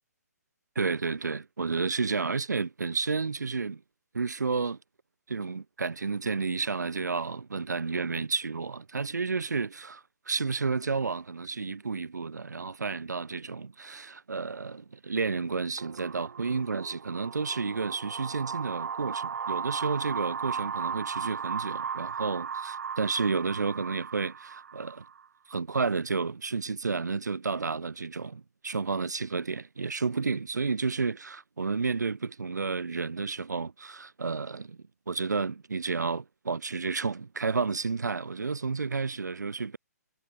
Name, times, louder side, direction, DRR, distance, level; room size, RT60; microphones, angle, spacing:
voice 1, 0.8-3.8 4.1-4.8 5.3-10.0 10.3-25.0 25.5-34.8 35.1-39.8, right 4 dB, 85° right, 1.9 m, -31 dB
sound 1, 15.8-25.2, right 7 dB, 65° right, 3.7 m, -36 dB
hypercardioid pair, 150°, 9 cm